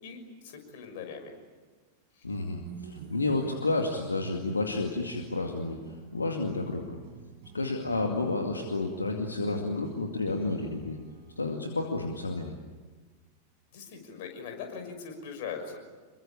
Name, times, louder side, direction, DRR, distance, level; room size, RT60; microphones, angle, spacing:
voice 1, 0.0-1.3 13.7-15.8, left 6 dB, 50° left, 5 dB, 6.2 m, -40 dB
voice 2, 2.2-7.0 7.5-11.0 11.4-12.5, left 2 dB, 80° left, 3 dB, 2.3 m, -31 dB
sound 1, 2.6-13.2, right 7 dB, 45° right, 4.7 m, -48 dB
28.0 x 23.0 x 8.8 m, 1.3 s
figure-of-eight pair, 90°, 0 cm